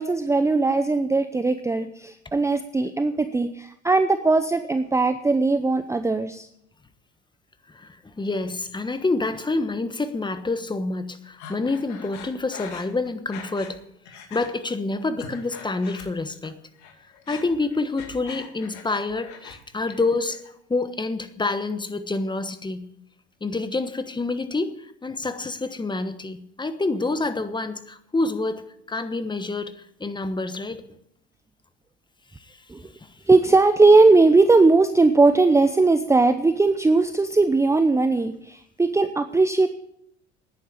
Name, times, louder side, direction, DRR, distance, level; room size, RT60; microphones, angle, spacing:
voice 1, 0.0-6.5 32.7-32.8 33.3-39.7, right 3 dB, 10° right, 9 dB, 0.7 m, -19 dB
voice 2, 7.7-13.8 14.3-16.6 17.3-20.4 20.7-22.9 23.4-30.8 32.4-32.6 33.0-33.1, left 3 dB, 15° left, 11 dB, 1.2 m, -27 dB
Breathing, 11.4-13.8 14.1-14.5 15.0-16.5 16.8-19.6 19.9-20.5, left 6 dB, 60° left, 2.5 m, -42 dB
10.0 x 9.7 x 8.7 m, 0.75 s
hypercardioid pair, 80°, 33 cm